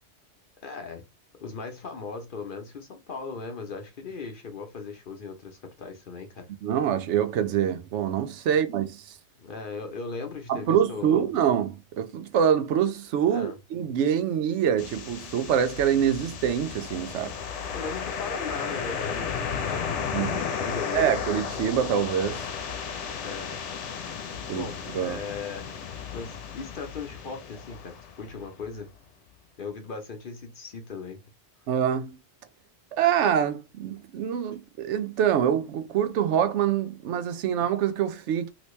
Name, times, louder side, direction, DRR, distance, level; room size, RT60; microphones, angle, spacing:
voice 1, 0.6-1.0 1.4-6.5 8.5-8.6 9.4-11.2 13.3-13.6 17.7-20.0 20.3-21.2 23.2-23.6 24.5-25.7 26.1-28.9 29.6-31.2, left 4 dB, 55° left, 0.9 m, -38 dB
voice 2, 6.6-9.2 10.5-17.4 20.1-20.4 20.9-22.5 24.5-25.2 31.7-32.2 32.9-38.5, right 9 dB, 80° right, 0.9 m, -25 dB
sound 1, 14.8-28.7, left 6 dB, 80° left, 1.0 m, -34 dB
3.0 x 2.8 x 3.1 m
omnidirectional pair, 1.2 m